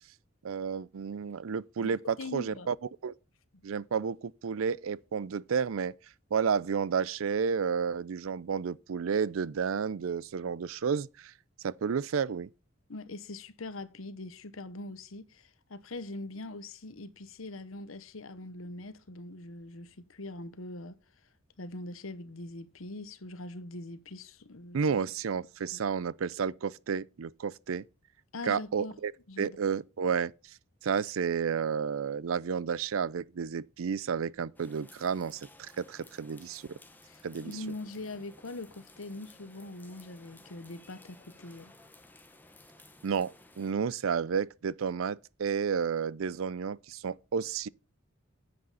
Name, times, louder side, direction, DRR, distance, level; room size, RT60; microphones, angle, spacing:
voice 1, 0.4-2.7 3.0-3.1 3.6-5.9 6.3-11.3 11.6-12.5 24.7-27.8 28.4-29.1 29.4-30.3 30.8-36.6 37.2-37.5 43.0-47.7, right 6 dB, 85° right, 0.5 m, -31 dB
voice 2, 1.8-2.7 12.9-21.0 21.6-24.8 25.7-25.8 28.3-29.0 29.3-29.6 37.1-41.7, left 2 dB, 85° left, 1.1 m, -42 dB
sound 1, 34.6-43.7, left 2 dB, 10° left, 1.3 m, -56 dB
9.7 x 7.8 x 3.9 m
head